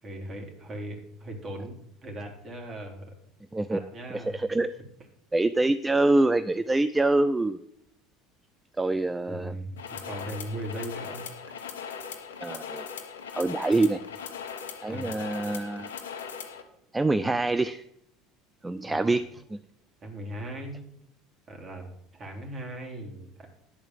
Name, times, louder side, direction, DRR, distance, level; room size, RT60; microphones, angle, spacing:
voice 1, 0.0-3.2 3.7-4.6 9.3-11.3 14.9-15.1 17.2-17.3 18.8-19.0 20.0-20.9 21.5-21.8 22.1-23.5, right 1 dB, 40° right, 1 dB, 3.4 m, -39 dB
voice 2, 4.3-4.7 5.3-7.6 8.8-9.5 12.4-12.9 13.3-14.0 14.8-15.9 16.9-17.8 18.6-19.2, right 2 dB, 15° right, 12 dB, 0.5 m, -25 dB
sound 1, 9.8-16.6, left 7 dB, 90° left, 1.2 m, -39 dB
10.5 x 4.5 x 7.5 m, 0.77 s
hypercardioid pair, 80°, 0 cm